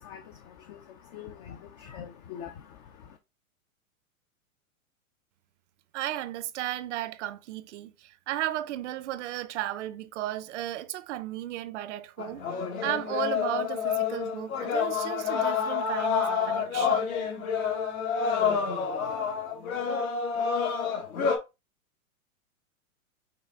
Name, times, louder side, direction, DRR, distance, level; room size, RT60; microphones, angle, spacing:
voice 1, 0.0-3.2, left 8 dB, 30° left, 0.4 m, -44 dB
voice 2, 5.9-12.4 12.8-17.1, right 13 dB, 55° right, 0.6 m, -34 dB
sound 1, 12.2-21.4, left 6 dB, 75° left, 1.7 m, -28 dB
5.6 x 2.2 x 3.6 m
hypercardioid pair, 120°, 42 cm